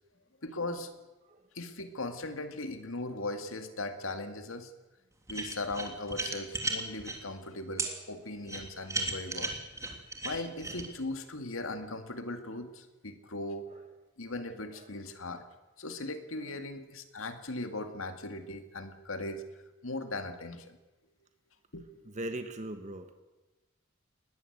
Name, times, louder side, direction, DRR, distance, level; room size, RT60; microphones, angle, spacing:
voice 1, 0.4-0.9 1.5-4.7 5.3-9.6 10.2-13.7 14.2-15.4 15.8-19.5 19.8-20.8 21.7-22.1, left 2 dB, 85° left, 7 dB, 2.2 m, -38 dB
sound 1, 5.3-7.2 7.8-7.9 8.5-10.9, right 2 dB, 15° right, 3.3 m, -34 dB
voice 2, 7.8-8.3 8.7-9.2 10.7-10.9 13.7-13.8 14.7-15.0 16.3-16.6 22.0-23.1, right 1 dB, 35° right, 7 dB, 1.4 m, -42 dB
20.5 x 19.5 x 8.1 m, 1.1 s
head